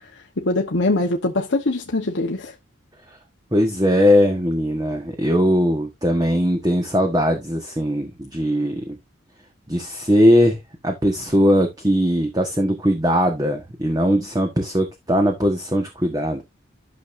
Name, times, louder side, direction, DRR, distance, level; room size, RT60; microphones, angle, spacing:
voice 1, 0.4-2.5, left 2 dB, 75° left, 1.1 m, -22 dB
voice 2, 3.5-9.0 9.7-10.6 10.8-16.4, equal, 20° right, 1.4 m, -20 dB
12.5 x 6.4 x 2.6 m
head